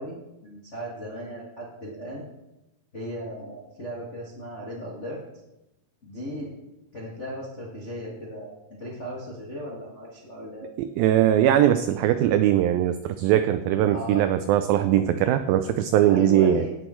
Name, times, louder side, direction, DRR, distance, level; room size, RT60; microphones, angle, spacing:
voice 1, 0.0-2.3 2.9-5.2 6.0-6.5 6.9-10.7 13.9-14.2 16.0-16.7, equal, 80° left, -4 dB, 0.6 m, -36 dB
voice 2, 10.8-16.7, right 11 dB, 85° right, 10 dB, 2.1 m, -21 dB
17.0 x 6.4 x 4.4 m, 0.91 s
omnidirectional pair, 4.7 m